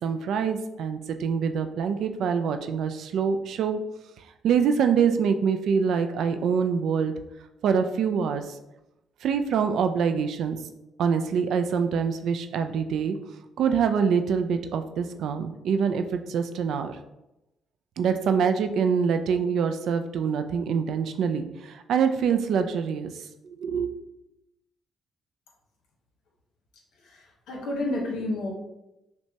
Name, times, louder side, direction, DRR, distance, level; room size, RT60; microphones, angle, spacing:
voice 1, 0.0-3.8 4.4-7.1 7.6-8.4 9.2-10.6 11.0-13.2 13.6-17.0 18.0-23.1 23.6-23.9, right 6 dB, 75° right, 8 dB, 0.3 m, -25 dB
voice 2, 27.0-28.5, left 2 dB, 85° left, -1 dB, 1.1 m, -30 dB
5.9 x 2.2 x 2.8 m, 0.92 s
cardioid pair, 90°, 0 cm